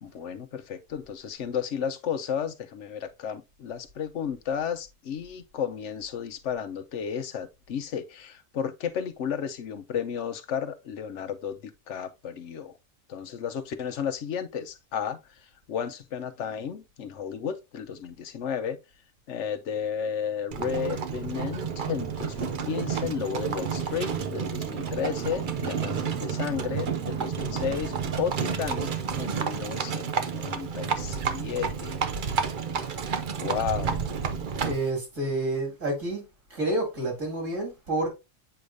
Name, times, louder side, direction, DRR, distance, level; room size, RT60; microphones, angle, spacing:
voice 1, 0.0-12.7 13.1-15.2 15.7-18.8 19.3-28.9 29.2-32.0 33.3-34.1, left 7 dB, 65° left, 0.9 m, -33 dB
Livestock farm animals working animals, 20.5-34.9, right 6 dB, 45° right, 0.7 m, -30 dB
sound 1, 22.2-30.0, right 5 dB, 85° right, 2.8 m, -47 dB
voice 2, 34.1-36.2 36.5-38.1, right 2 dB, 65° right, 2.9 m, -30 dB
7.8 x 4.9 x 2.6 m
omnidirectional pair, 1.4 m